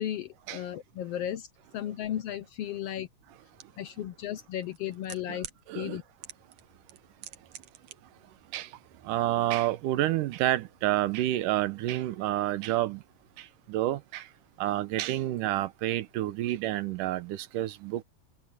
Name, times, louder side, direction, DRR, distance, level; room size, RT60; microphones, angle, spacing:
voice 1, 0.0-1.5 1.7-3.1 3.8-5.5 5.7-6.0, left 11 dB, 75° left, 1.4 m, -35 dB
sound 1, 3.6-3.7 4.6-5.6 6.2-6.6 6.9-7.9 8.2-8.3, right 10 dB, 60° right, 2.2 m, -43 dB
voice 2, 5.7-6.0 8.5-8.7 9.1-13.0 13.7-14.2 14.6-18.0, right 14 dB, 85° right, 2.5 m, -29 dB
omnidirectional pair, 3.7 m